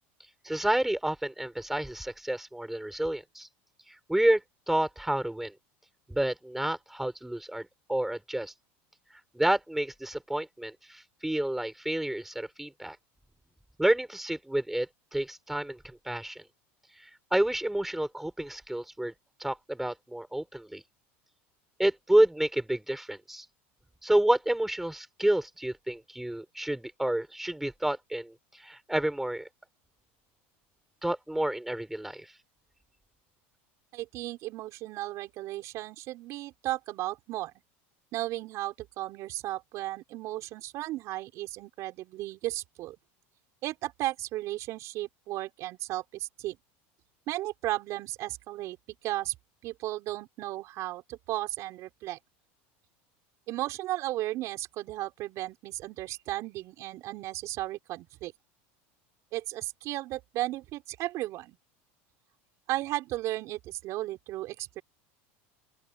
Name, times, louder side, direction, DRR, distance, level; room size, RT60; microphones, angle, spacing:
voice 1, 0.4-3.5 4.1-4.4 4.7-5.5 6.1-8.5 9.3-13.0 13.8-15.8 16.1-16.4 17.3-19.1 19.4-20.8 21.8-23.5 24.0-29.5 31.0-32.3, right 1 dB, 5° right, 5.6 m, -29 dB
voice 2, 33.9-37.5 38.1-42.9 43.6-46.6 47.3-48.8 49.0-49.3 49.6-52.2 53.5-58.3 59.3-61.6 62.7-64.8, right 16 dB, 50° right, 5.0 m, -35 dB
open air
supercardioid pair, 130°, 7 cm